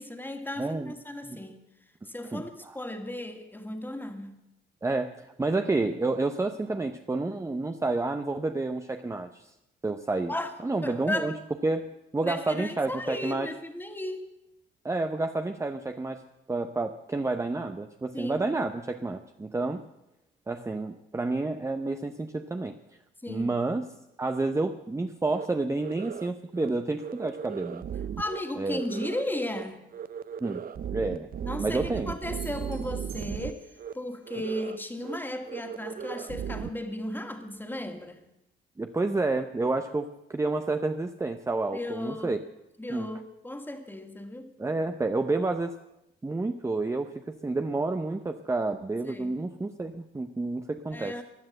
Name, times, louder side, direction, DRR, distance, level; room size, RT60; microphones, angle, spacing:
voice 1, 0.0-1.6 2.1-4.3 10.3-10.5 10.8-11.4 12.2-14.3 18.1-18.5 23.2-23.6 28.2-29.8 31.4-33.7 33.9-38.2 41.7-42.4 42.8-44.5 49.1-49.4 50.9-51.2, left 1 dB, 10° left, 5 dB, 2.0 m, -35 dB
voice 2, 0.6-0.9 1.3-1.4 2.3-2.8 4.8-9.5 9.8-10.3 10.6-11.3 11.6-13.5 14.8-16.2 16.5-19.8 20.5-22.8 23.3-23.8 24.2-27.8 28.6-28.8 30.4-30.6 30.9-31.3 31.6-32.2 38.8-42.4 42.9-43.1 44.6-45.8 46.2-51.2, right 3 dB, 15° right, 6 dB, 0.8 m, -29 dB
sound 1, 25.3-25.5 25.8-26.3 26.5-26.7 27.0-28.4 28.7-29.2 29.5-29.6 29.9-33.5 33.8-33.9 34.3-34.8 35.0-35.2 35.5-36.7, right 8 dB, 45° right, 0.6 m, -36 dB
sound 2, 32.4-34.0, right 4 dB, 70° right, 5.8 m, -51 dB
15.5 x 10.5 x 7.7 m, 0.88 s
cardioid pair, 90°, 20 cm